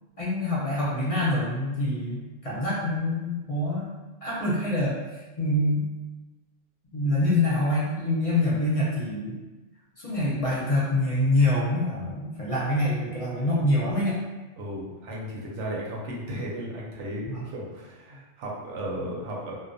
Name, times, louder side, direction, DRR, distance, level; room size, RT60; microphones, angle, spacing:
voice 1, 0.2-3.9 4.2-5.8 6.9-9.4 10.0-14.2 17.2-17.4, left 1 dB, 40° left, -8 dB, 0.5 m, -25 dB
voice 2, 14.6-19.6, right 1 dB, 80° right, -3 dB, 0.9 m, -35 dB
2.2 x 2.2 x 2.5 m, 1.2 s
omnidirectional pair, 1.2 m